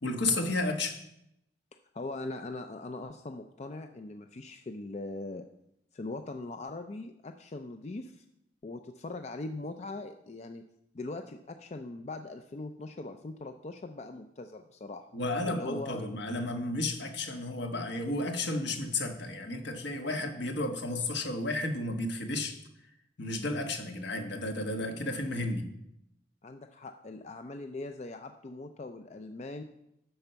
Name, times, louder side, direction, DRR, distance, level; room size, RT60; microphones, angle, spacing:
voice 1, 0.0-1.0 15.1-22.6 23.2-25.7, left 2 dB, 75° left, 4 dB, 1.3 m, -32 dB
voice 2, 1.9-5.4 5.9-8.2 8.6-10.6 10.9-15.0 15.4-16.1 26.4-29.6, left 2 dB, 35° left, 6 dB, 0.4 m, -41 dB
11.0 x 4.5 x 6.8 m, 0.81 s
head